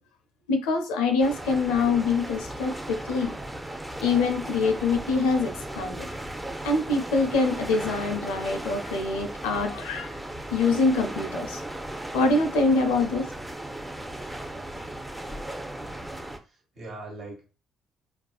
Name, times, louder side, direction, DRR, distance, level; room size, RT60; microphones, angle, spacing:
voice 1, 0.5-3.4 4.0-6.1 6.6-10.2 10.5-11.6 12.1-13.3, left 3 dB, 75° left, 6 dB, 0.4 m, -25 dB
sound 1, 1.2-16.4, right 1 dB, 10° right, 0.5 m, -36 dB
voice 2, 16.5-17.6, right 2 dB, 55° right, -1 dB, 1.0 m, -42 dB
2.4 x 2.3 x 2.3 m, 0.33 s
figure-of-eight pair, 45°, 0 cm